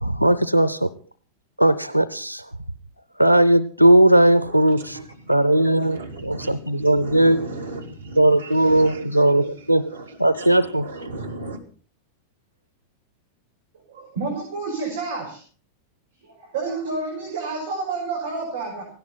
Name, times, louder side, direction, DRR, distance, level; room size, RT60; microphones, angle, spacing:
voice 1, 0.0-0.9 1.6-2.6 3.2-7.4 8.2-9.9 10.2-10.9, right 1 dB, 90° left, 0.6 m, -18 dB
voice 2, 4.5-5.0 5.5-9.5 9.9-10.1 10.4-11.6, right 2 dB, 80° right, 3.3 m, -37 dB
voice 3, 13.9-15.4 16.2-18.8, right 3 dB, 60° right, 6.2 m, -29 dB
17.5 x 17.5 x 4.3 m
figure-of-eight pair, 90°, 0 cm